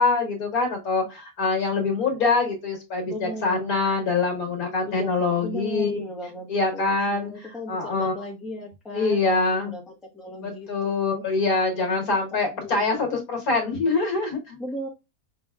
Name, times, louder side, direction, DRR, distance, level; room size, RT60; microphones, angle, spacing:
voice 1, 0.0-6.0 6.5-7.3 7.7-8.1 8.9-9.7 10.4-14.6, left 3 dB, 65° left, 2 dB, 1.7 m, -24 dB
voice 2, 3.0-4.0 4.8-11.2 11.7-12.0 12.4-13.1 14.6-14.9, left 1 dB, ahead, -2 dB, 0.9 m, -37 dB
5.3 x 3.3 x 2.3 m, 0.26 s
omnidirectional pair, 1.7 m